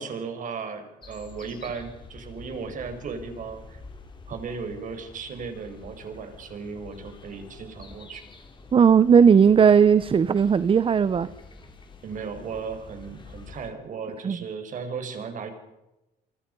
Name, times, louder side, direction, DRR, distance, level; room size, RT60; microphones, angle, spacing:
voice 1, 0.0-3.8 4.3-8.2 12.0-15.5, right 5 dB, 50° right, 7 dB, 5.2 m, -36 dB
sound 1, 1.0-13.7, left 4 dB, 30° left, 4.3 m, -47 dB
voice 2, 8.7-11.3 14.2-14.4, right 7 dB, 30° right, 16 dB, 0.8 m, -17 dB
28.5 x 24.0 x 5.5 m, 0.97 s
cardioid pair, 110°, 17 cm